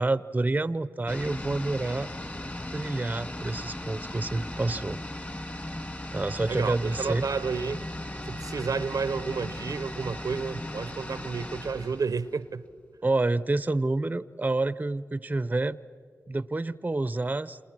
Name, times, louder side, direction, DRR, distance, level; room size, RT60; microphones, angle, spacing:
voice 1, 0.0-2.1 2.7-5.0 6.1-7.3 13.0-15.8 16.3-17.6, right 2 dB, 25° right, 0.6 m, -28 dB
sound 1, 1.1-12.8 13.1-13.2, left 1 dB, 30° left, 2.6 m, -37 dB
voice 2, 6.4-7.9 8.3-12.6, right 5 dB, 70° right, 0.6 m, -31 dB
29.0 x 26.0 x 6.1 m
cardioid pair, 45°, 6 cm